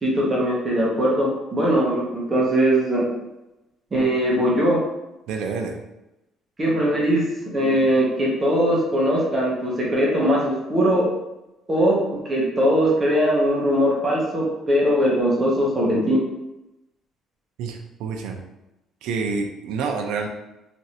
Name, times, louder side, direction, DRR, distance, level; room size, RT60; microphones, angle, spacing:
voice 1, 0.0-3.1 3.9-4.8 6.6-7.2 7.5-11.1 11.7-16.2, equal, 20° right, -4 dB, 0.7 m, -20 dB
voice 2, 5.3-5.8 17.6-18.4 19.0-20.3, right 4 dB, 85° right, 3 dB, 0.4 m, -28 dB
3.1 x 2.5 x 2.8 m, 0.94 s
cardioid pair, 170°, 0 cm